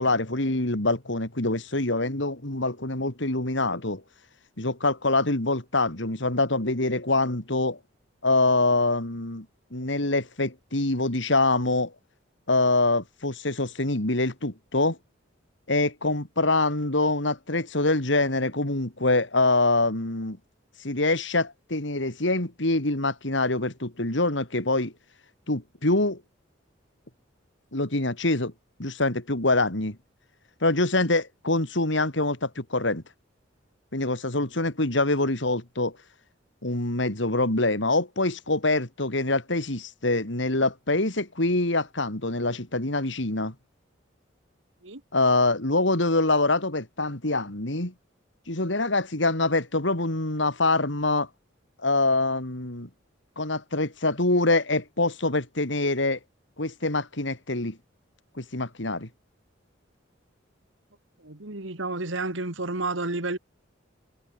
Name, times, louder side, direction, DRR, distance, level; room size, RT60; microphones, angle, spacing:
voice 1, 0.0-4.0 4.6-7.8 8.2-9.4 9.7-11.9 12.5-15.0 15.7-20.4 20.8-24.9 25.5-26.2 27.7-28.5 28.8-30.0 30.6-33.0 33.9-36.0 36.6-43.5 45.1-47.9 48.5-51.3 51.8-52.9 53.4-56.2 56.6-57.8 58.4-59.1, left 2 dB, 65° left, 3.2 m, -25 dB
voice 2, 61.2-63.4, right 2 dB, 75° right, 2.4 m, -30 dB
head